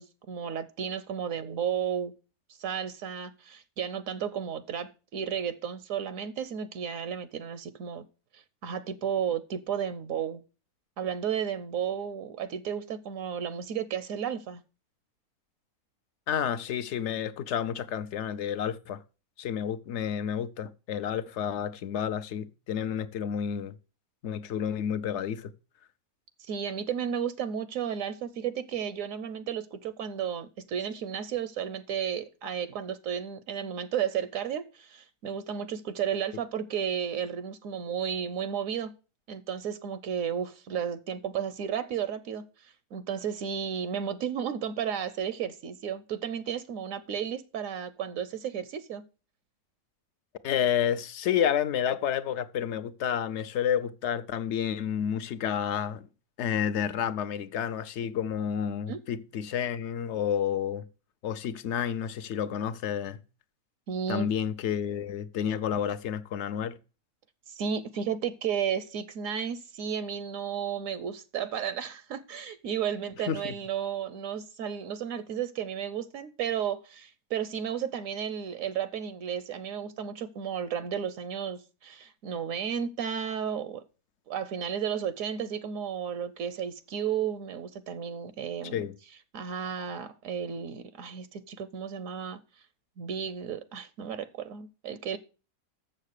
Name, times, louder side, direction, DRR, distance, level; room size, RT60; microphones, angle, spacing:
voice 1, 0.0-2.1 2.6-8.0 8.3-10.4 11.0-14.6 26.4-38.9 39.3-49.0 58.9-59.0 63.9-64.3 67.5-83.8 84.3-88.8 89.3-92.4 93.0-95.2, right 8 dB, 70° right, 1.0 m, -33 dB
voice 2, 16.3-19.0 19.4-23.8 24.2-25.5 50.4-56.1 56.4-60.8 61.2-63.2 64.1-66.8 73.3-73.5 88.7-88.9, left 9 dB, 65° left, 0.8 m, -30 dB
7.0 x 6.6 x 6.5 m
omnidirectional pair, 1.5 m